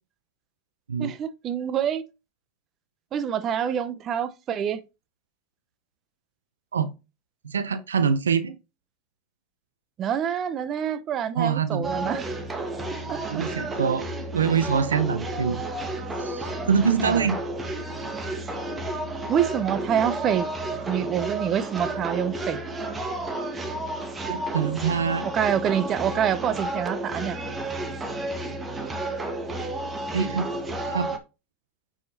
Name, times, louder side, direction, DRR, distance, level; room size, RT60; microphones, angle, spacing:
voice 1, 1.0-2.0 3.1-4.8 10.0-12.3 13.1-13.5 17.0-17.3 19.3-20.5 20.9-22.6 25.3-27.4, right 9 dB, 40° right, 0.7 m, -26 dB
voice 2, 7.4-8.6 11.4-11.9 13.3-15.6 16.2-17.4 24.3-25.3 30.1-30.5 30.9-31.1, right 6 dB, 90° right, 0.6 m, -25 dB
sound 1, 11.8-31.2, right 2 dB, 20° right, 1.3 m, -32 dB
9.5 x 5.0 x 2.7 m
hypercardioid pair, 90°, 0 cm